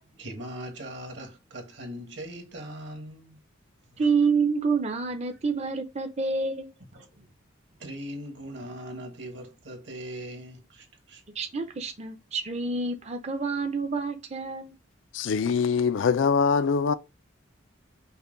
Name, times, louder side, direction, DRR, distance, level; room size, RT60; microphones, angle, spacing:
voice 1, 0.0-3.4 3.9-4.1 5.3-5.4 6.9-7.3 7.8-11.2, equal, 60° right, 1.2 m, -40 dB
voice 2, 4.0-6.7 11.4-14.7, right 4 dB, 30° right, 0.5 m, -28 dB
voice 3, 15.1-16.9, left 5 dB, 70° left, 0.4 m, -23 dB
5.5 x 2.2 x 3.7 m
head